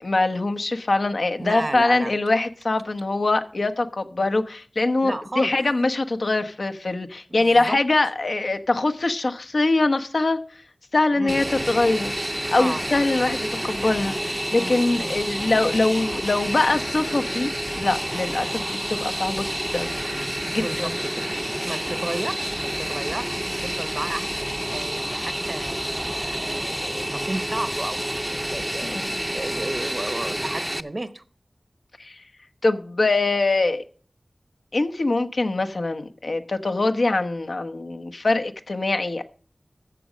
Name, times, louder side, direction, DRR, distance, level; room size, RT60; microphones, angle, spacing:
voice 1, 0.0-10.4 10.9-19.9 20.5-20.9 28.8-29.1 32.0-32.2 32.6-33.8 34.7-39.2, left 2 dB, 80° left, 1.0 m, -23 dB
voice 2, 1.4-2.1 5.0-5.6 7.3-7.8 11.1-11.4 12.5-12.8 14.5-15.2 20.6-21.3 21.7-31.2, right 2 dB, 45° right, 0.8 m, -33 dB
Fixed-wing aircraft airplane, 11.3-30.8, equal, 10° right, 0.6 m, -29 dB
13.5 x 7.4 x 5.1 m
wide cardioid pair, 60°, 0 cm